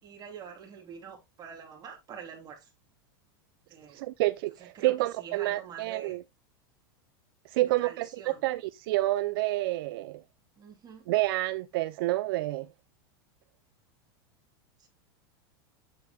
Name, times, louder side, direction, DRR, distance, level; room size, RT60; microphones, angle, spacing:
voice 1, 0.0-2.7 3.7-4.0 4.6-6.2 7.6-8.5 10.6-11.1 14.8-14.9, right 7 dB, 30° right, 3.2 m, -46 dB
voice 2, 3.9-6.2 7.5-10.2 11.1-12.7, right 17 dB, 70° right, 0.5 m, -29 dB
8.5 x 7.8 x 2.4 m
supercardioid pair, 120°, 12 cm